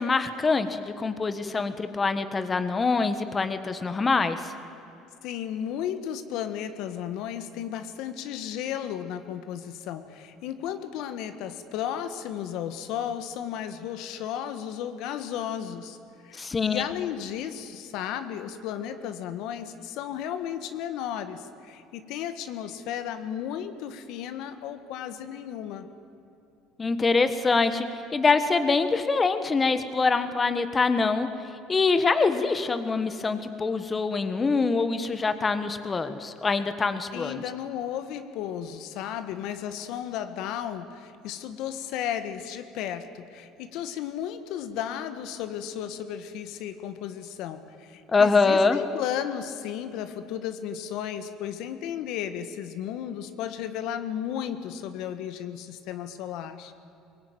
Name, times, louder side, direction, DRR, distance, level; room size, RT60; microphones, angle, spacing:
voice 1, 0.0-4.5 16.4-16.9 26.8-31.3 31.7-37.4 48.1-48.8, left 4 dB, 25° left, 10 dB, 1.3 m, -24 dB
voice 2, 5.2-16.0 16.2-25.9 37.1-56.7, left 9 dB, 70° left, 9 dB, 1.5 m, -34 dB
22.5 x 20.0 x 9.2 m, 2.8 s
supercardioid pair, 110°, 0 cm